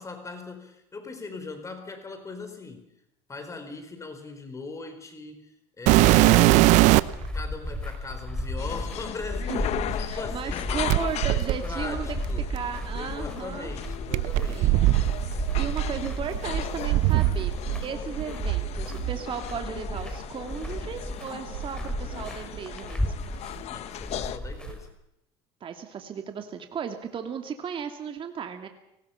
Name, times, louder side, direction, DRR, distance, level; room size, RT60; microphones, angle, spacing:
voice 1, 0.0-2.9 3.3-6.8 7.3-10.6 11.2-12.5 12.9-14.8 23.7-24.9, left 3 dB, 25° left, 7 dB, 4.3 m, -40 dB
sound 1, 5.9-7.3 8.1-8.2 10.9-13.0 14.1-17.8 18.1-19.2 19.9-20.1 20.7-20.8 21.5-22.6 22.8-23.4 24.7-24.8, right 17 dB, 70° right, 0.9 m, -22 dB
sound 2, 7.1-24.9, left 1 dB, 5° left, 5.3 m, -35 dB
sound 3, 8.6-24.4, left 12 dB, 60° left, 1.1 m, -38 dB
voice 2, 9.4-12.2 12.5-13.7 14.5-14.8 15.6-23.3 25.6-28.7, right 7 dB, 45° right, 6 dB, 2.4 m, -35 dB
29.5 x 19.5 x 5.8 m, 0.85 s
supercardioid pair, 90°, 13 cm